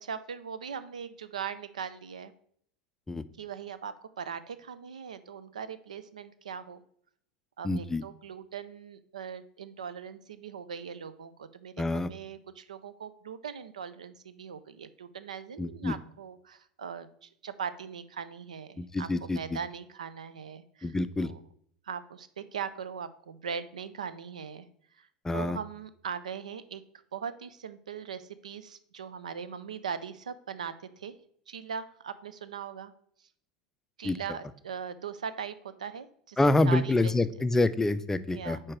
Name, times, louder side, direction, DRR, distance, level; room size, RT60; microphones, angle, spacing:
voice 1, 0.0-2.3 3.4-6.8 7.6-19.1 19.3-21.4 21.8-24.7 25.0-26.8 27.1-31.1 31.5-32.9 34.0-36.4 36.6-37.1 38.3-38.6, right 7 dB, 90° right, 13 dB, 0.4 m, -40 dB
voice 2, 7.6-8.0 11.8-12.1 15.6-15.9 18.8-19.6 20.8-21.3 25.2-25.6 34.0-34.2 36.4-38.6, left 2 dB, 10° left, 14 dB, 0.4 m, -27 dB
4.7 x 4.4 x 6.0 m, 0.64 s
hypercardioid pair, 90°, 4 cm